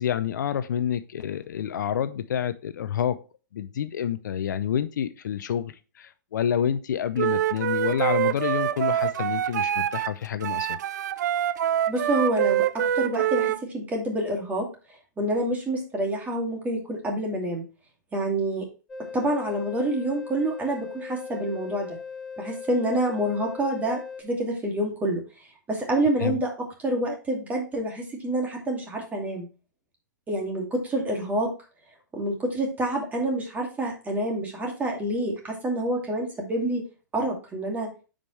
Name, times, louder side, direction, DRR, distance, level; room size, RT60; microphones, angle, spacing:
voice 1, 0.0-3.2 3.5-10.8 26.2-26.4, left 9 dB, 70° left, 12 dB, 0.7 m, -28 dB
Wind instrument woodwind instrument, 7.2-10.1 10.4-13.6, right 11 dB, 65° right, 0.4 m, -25 dB
voice 2, 11.9-14.7 15.2-17.6 18.1-18.7 19.1-22.0 22.4-25.2 25.7-26.5 26.8-29.5 30.3-31.5 32.1-36.8 37.1-37.9, right 1 dB, 15° right, 0 dB, 2.5 m, -27 dB
sound 1, 18.9-24.2, left 5 dB, 5° left, 2.6 m, -39 dB
9.1 x 5.2 x 3.2 m, 0.34 s
hypercardioid pair, 120°, 10 cm